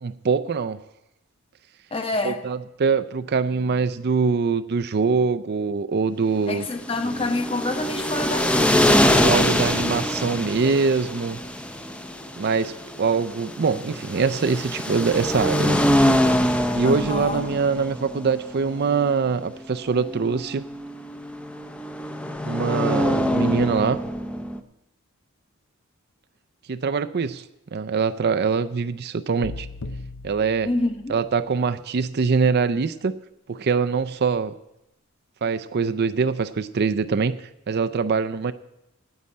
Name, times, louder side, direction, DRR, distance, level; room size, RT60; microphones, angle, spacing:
voice 1, 0.0-0.8 2.2-6.7 7.0-7.3 9.2-11.4 12.4-15.8 16.7-20.6 22.5-24.0 26.7-27.4 27.7-29.7 30.2-30.7 31.1-33.1 33.5-34.5 35.4-37.4 37.7-38.5, right 5 dB, 50° right, 10 dB, 0.5 m, -23 dB
voice 2, 1.9-2.4 6.5-9.0 16.8-17.5 30.6-31.1, left 2 dB, 25° left, 6 dB, 1.0 m, -27 dB
sound 1, 6.7-24.6, left 1 dB, 5° left, 0.6 m, -24 dB
sound 2, 29.4-31.6, left 2 dB, 85° left, 0.8 m, -38 dB
9.6 x 8.8 x 8.4 m, 0.86 s
head